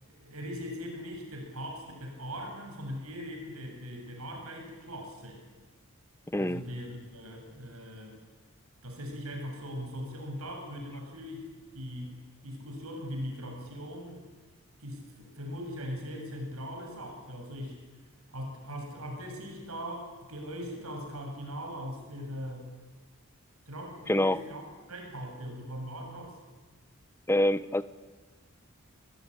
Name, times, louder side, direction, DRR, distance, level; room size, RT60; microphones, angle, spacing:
voice 1, 0.0-5.4 6.4-8.2 8.8-14.2 14.8-17.8 18.3-22.7 23.7-24.6 24.9-26.4, equal, 80° right, 3 dB, 7.2 m, -40 dB
voice 2, 6.3-6.6 24.1-24.4 27.3-27.8, left 1 dB, 10° left, 15 dB, 0.8 m, -26 dB
27.5 x 21.0 x 10.0 m, 1.3 s
head